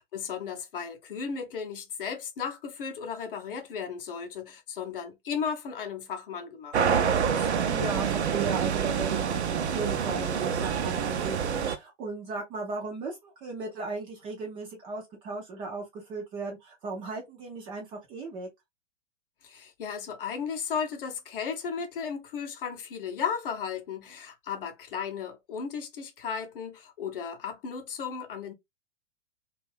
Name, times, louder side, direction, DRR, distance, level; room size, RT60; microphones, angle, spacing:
voice 1, 0.0-7.5 19.4-28.5, left 6 dB, 50° left, 0.8 m, -35 dB
sound 1, 6.7-11.8, right 7 dB, 65° right, 0.6 m, -27 dB
voice 2, 7.7-18.5, right 3 dB, 15° right, 0.4 m, -36 dB
2.6 x 2.3 x 3.2 m
figure-of-eight pair, 105°, 36 cm